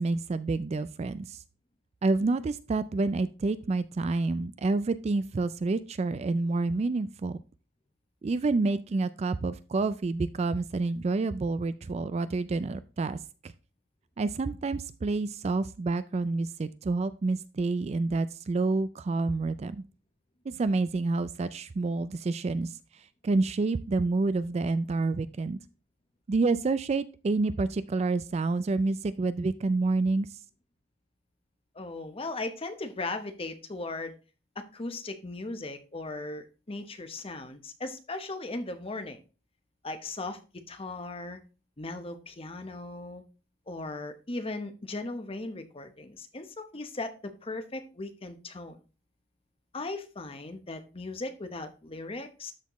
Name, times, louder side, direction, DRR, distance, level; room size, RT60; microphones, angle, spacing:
voice 1, 0.0-1.4 2.0-7.4 8.2-13.5 14.2-19.8 20.5-25.6 26.3-30.4, right 3 dB, 35° right, 14 dB, 0.3 m, -28 dB
voice 2, 31.7-34.1 34.6-39.2 39.8-40.4 40.7-41.4 41.8-43.2 43.7-48.8 49.7-52.5, left 2 dB, 30° left, 8 dB, 0.9 m, -38 dB
12.5 x 4.3 x 3.0 m, 0.33 s
head